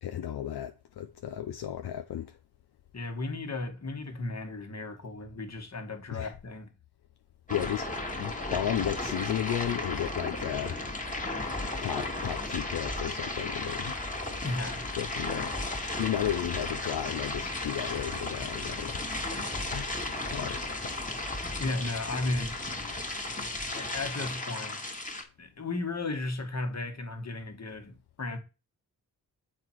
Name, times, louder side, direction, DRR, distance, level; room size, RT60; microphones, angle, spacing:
voice 1, 0.0-2.3 6.1-6.3 7.5-7.9 8.2-10.8 11.8-13.9 15.0-15.5 16.0-19.1 19.7-19.9 20.2-20.6, left 11 dB, 75° left, 0.7 m, -33 dB
voice 2, 2.9-6.7 14.4-14.9 21.6-22.6 23.7-24.8 25.4-28.4, left 2 dB, 45° left, 1.8 m, -35 dB
sound 1, 7.5-25.2, left 2 dB, 20° left, 1.8 m, -34 dB
7.2 x 4.2 x 4.6 m
cardioid pair, 45°, 39 cm